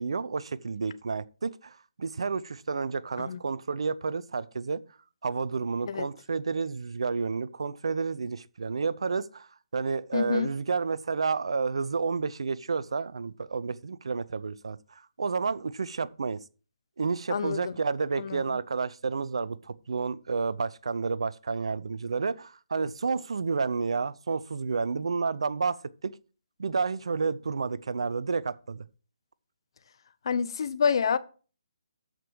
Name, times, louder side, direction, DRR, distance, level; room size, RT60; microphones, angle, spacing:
voice 1, 0.0-4.8 5.2-16.4 17.0-26.2 26.6-28.8, right 4 dB, 65° right, 0.6 m, -30 dB
voice 2, 10.1-10.5 17.3-17.7 18.2-18.6 30.2-31.2, left 6 dB, 55° left, 0.8 m, -28 dB
13.5 x 5.2 x 4.7 m
figure-of-eight pair, 140°, 3 cm